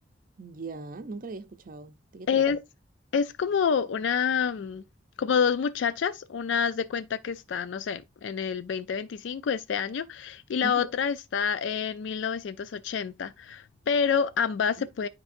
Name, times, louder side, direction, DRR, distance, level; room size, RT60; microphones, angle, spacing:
voice 1, 0.4-2.4 10.6-10.9, right 3 dB, 45° right, 0.5 m, -39 dB
voice 2, 2.3-2.6 3.1-4.8 5.2-15.1, left 6 dB, 80° left, 0.4 m, -28 dB
9.6 x 4.6 x 2.5 m
head